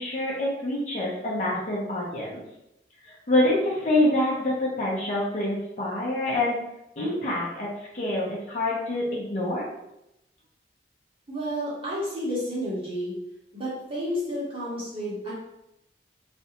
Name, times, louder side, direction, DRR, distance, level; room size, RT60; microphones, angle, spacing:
voice 1, 0.0-2.4 3.0-6.6 7.0-7.7 7.9-9.7, left 1 dB, 40° left, -5 dB, 0.7 m, -26 dB
voice 2, 11.3-13.1 13.5-15.3, equal, 30° right, -8 dB, 1.0 m, -31 dB
2.5 x 2.2 x 2.8 m, 0.84 s
head